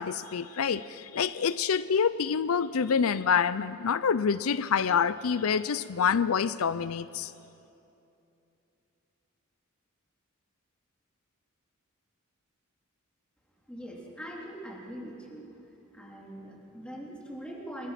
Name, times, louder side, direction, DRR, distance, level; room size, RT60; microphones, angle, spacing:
voice 1, 0.0-7.3, left 6 dB, 80° left, 15 dB, 0.5 m, -27 dB
voice 2, 13.7-15.5 15.9-17.9, equal, 5° left, -3 dB, 3.6 m, -42 dB
28.5 x 21.5 x 5.9 m, 2.8 s
head